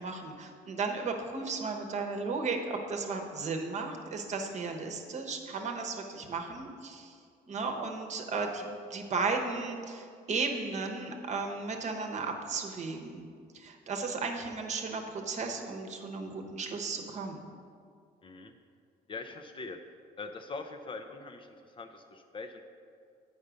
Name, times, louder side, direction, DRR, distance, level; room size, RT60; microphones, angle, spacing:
voice 1, 0.0-7.2 7.5-13.3 13.5-17.5, right 4 dB, 45° right, 4 dB, 0.9 m, -35 dB
voice 2, 18.2-18.5 19.1-19.8 20.2-22.6, left 3 dB, 30° left, 6 dB, 0.5 m, -42 dB
8.1 x 5.4 x 5.0 m, 2.2 s
cardioid pair, 110°, 17 cm